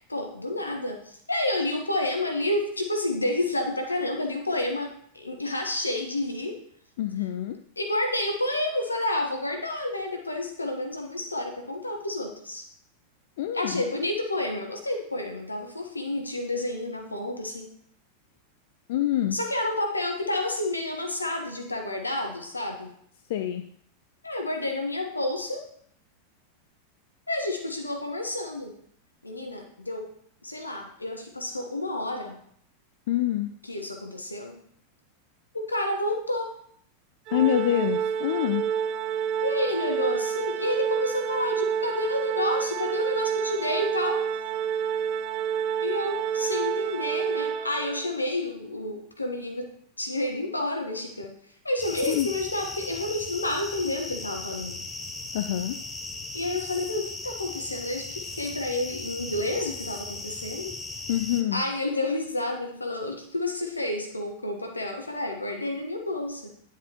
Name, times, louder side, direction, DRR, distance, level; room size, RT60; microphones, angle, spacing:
voice 1, 0.1-6.6 7.8-12.6 13.5-17.7 19.3-22.9 24.2-25.7 27.3-28.7 29.2-30.1 30.4-32.4 33.6-34.6 35.5-36.6 39.4-44.2 45.8-51.4 51.6-54.8 56.3-60.8 61.5-66.5, left 1 dB, 80° left, 3 dB, 1.2 m, -30 dB
voice 2, 7.0-7.6 13.4-13.8 18.9-19.4 23.3-23.6 33.1-33.5 37.3-38.7 52.1-52.3 55.3-55.8 61.1-61.6, left 12 dB, 55° left, 7 dB, 0.4 m, -26 dB
Organ, 37.3-48.1, right 8 dB, 40° right, 0.6 m, -29 dB
sound 1, 51.8-61.4, left 3 dB, 15° left, 0.9 m, -37 dB
10.0 x 7.3 x 3.0 m, 0.66 s
figure-of-eight pair, 90°, 0 cm